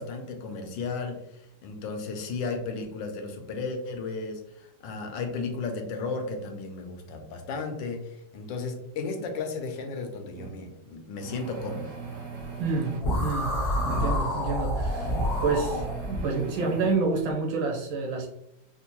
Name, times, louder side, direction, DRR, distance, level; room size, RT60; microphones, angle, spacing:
voice 1, 0.0-11.9, left 4 dB, 80° left, 5 dB, 1.3 m, -34 dB
sound 1, 10.3-10.5 11.2-13.0 13.7-14.1 14.8-16.9, right 5 dB, 55° right, 0.9 m, -39 dB
voice 2, 12.6-13.5 13.8-15.2 15.4-18.3, right 4 dB, 85° right, 1 dB, 1.6 m, -28 dB
sound 2, 13.0-16.2, equal, 55° left, 0.7 m, -28 dB
4.4 x 2.2 x 2.9 m, 0.82 s
omnidirectional pair, 2.1 m